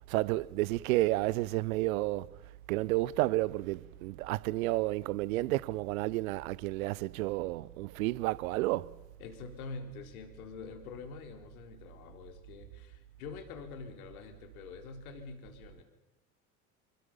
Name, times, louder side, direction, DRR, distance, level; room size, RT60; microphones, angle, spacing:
voice 1, 0.1-2.4 2.7-9.0, right 19 dB, 65° right, 1.0 m, -31 dB
voice 2, 9.2-15.8, left 4 dB, 65° left, 4.0 m, -46 dB
28.0 x 23.5 x 5.6 m
figure-of-eight pair, 70°, 45 cm